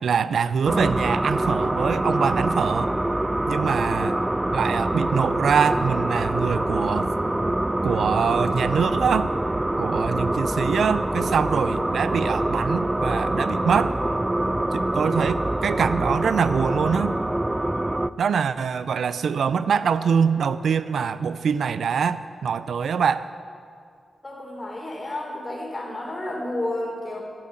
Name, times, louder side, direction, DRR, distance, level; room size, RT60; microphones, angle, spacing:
voice 1, 0.0-2.9 3.5-4.2 4.5-7.1 7.8-9.3 9.8-14.0 14.7-17.2 18.2-23.3, right 6 dB, 80° right, 14 dB, 0.5 m, -24 dB
sound 1, 0.7-18.1, right 1 dB, 15° right, 0.3 m, -25 dB
voice 2, 24.2-27.2, left 1 dB, 25° left, -1 dB, 3.4 m, -31 dB
12.0 x 8.7 x 9.0 m, 2.3 s
cardioid pair, 90°, 0 cm